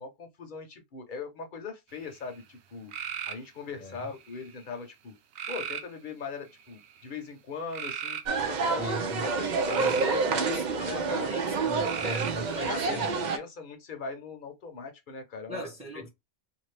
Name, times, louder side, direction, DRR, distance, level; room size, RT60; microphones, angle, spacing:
voice 1, 0.0-2.9 3.3-5.1 5.5-9.8 10.1-11.4 11.6-12.0 12.7-15.6, left 5 dB, 50° left, 0.9 m, -40 dB
sound 1, 1.9-2.4 2.9-3.5 4.1-4.6 5.4-5.9 6.6-7.0 7.7-8.2 9.3-10.2 11.8-12.5, right 8 dB, 85° right, 0.8 m, -36 dB
sound 2, 8.3-13.4, right 4 dB, 55° right, 0.6 m, -28 dB
voice 2, 8.8-9.3 9.7-13.2 15.5-16.1, right 1 dB, 5° right, 0.8 m, -37 dB
2.5 x 2.5 x 3.3 m
omnidirectional pair, 1.1 m